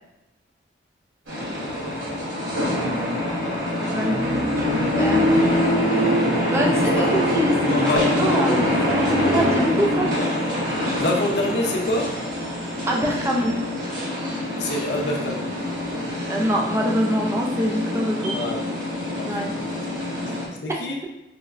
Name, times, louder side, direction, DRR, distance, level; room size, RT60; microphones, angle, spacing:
sound 1, 1.3-20.5, left 1 dB, 80° right, 1.0 m, -24 dB
voice 1, 3.9-4.5 4.7-5.3 6.5-7.9 8.2-8.7 9.0-10.1 12.9-13.6 16.3-18.4 19.2-19.5 19.9-20.0, equal, 15° right, -1 dB, 0.3 m, -25 dB
voice 2, 6.6-7.4 7.7-8.2 8.4-8.8 9.9-10.3 11.0-12.4 14.6-15.7 18.3-18.6 19.0-19.8 20.3-20.4 20.6-21.0, left 1 dB, 65° left, 0 dB, 0.5 m, -27 dB
4.0 x 2.1 x 2.3 m, 0.94 s
head